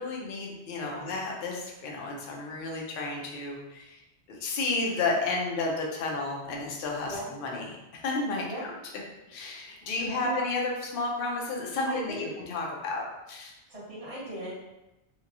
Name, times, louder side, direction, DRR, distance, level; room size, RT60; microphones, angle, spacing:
voice 1, 0.0-4.0 4.3-7.7 7.9-8.7 9.3-13.5, left 3 dB, 60° left, -1 dB, 0.7 m, -32 dB
voice 2, 0.8-1.1 7.1-7.3 8.5-8.7 9.9-10.4 11.9-12.3 13.7-14.5, right 1 dB, 35° right, -7 dB, 1.1 m, -38 dB
2.9 x 2.2 x 2.5 m, 0.95 s
omnidirectional pair, 1.1 m